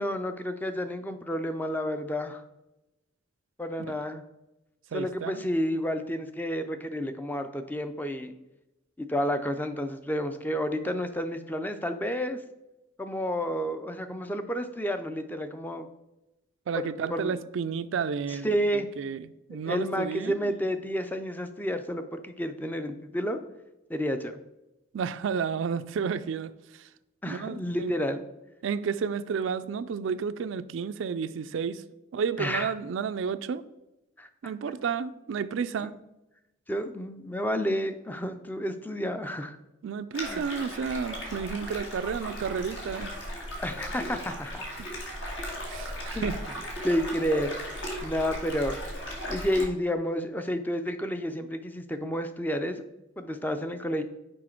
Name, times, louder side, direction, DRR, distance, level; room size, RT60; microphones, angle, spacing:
voice 1, 0.0-2.4 3.6-4.2 4.9-8.3 9.0-12.4 13.0-15.9 16.8-17.4 18.3-18.9 19.6-23.4 23.9-24.4 27.2-28.2 32.4-32.7 34.2-34.5 35.8-35.9 36.7-39.6 40.3-40.5 43.6-44.7 46.1-46.3 46.8-47.7 48.0-52.8 53.2-54.0, equal, 10° left, 8 dB, 0.4 m, -30 dB
voice 2, 4.9-5.4 16.7-20.4 24.9-26.5 27.3-27.9 28.6-31.8 32.1-33.6 34.4-35.9 39.8-43.1 44.8-44.9 45.6-46.4, right 6 dB, 80° right, 13 dB, 0.3 m, -31 dB
sound 1, 40.1-49.7, equal, 70° left, 1.8 m, -37 dB
6.2 x 4.9 x 4.4 m, 0.95 s
head